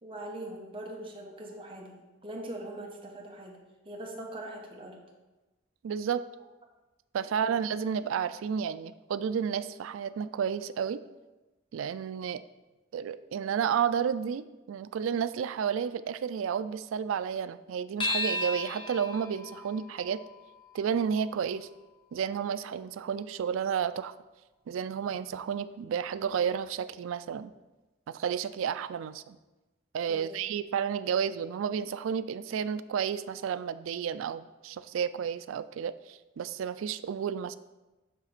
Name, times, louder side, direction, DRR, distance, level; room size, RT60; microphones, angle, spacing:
voice 1, 0.0-2.0 2.2-3.6 3.8-5.0 7.2-7.6 30.1-30.3, right 1 dB, 25° right, -1 dB, 1.0 m, -42 dB
voice 2, 5.8-6.3 7.1-11.0 11.7-12.4 12.9-20.2 20.7-21.7 22.1-24.1 24.7-27.5 28.1-29.4 29.9-37.6, right 7 dB, 80° right, 14 dB, 0.3 m, -31 dB
sound 1, 18.0-22.8, left 2 dB, 25° left, 0.9 m, -37 dB
7.3 x 3.2 x 5.9 m, 1.1 s
head